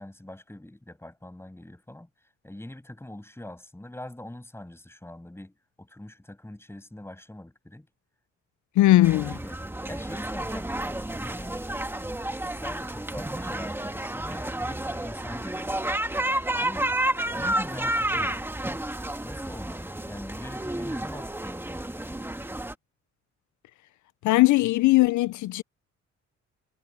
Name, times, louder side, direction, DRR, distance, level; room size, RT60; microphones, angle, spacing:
voice 1, 0.0-2.1 2.4-7.9 8.9-9.6 9.9-11.7 12.3-15.9 16.6-16.9 17.3-18.4 19.2-22.3, left 1 dB, 10° left, 7.5 m, -43 dB
voice 2, 8.8-9.3 24.2-25.6, left 17 dB, 75° left, 0.5 m, -19 dB
sound 1, 9.0-22.7, right 1 dB, 5° right, 1.5 m, -31 dB
cardioid pair, 90°, 30 cm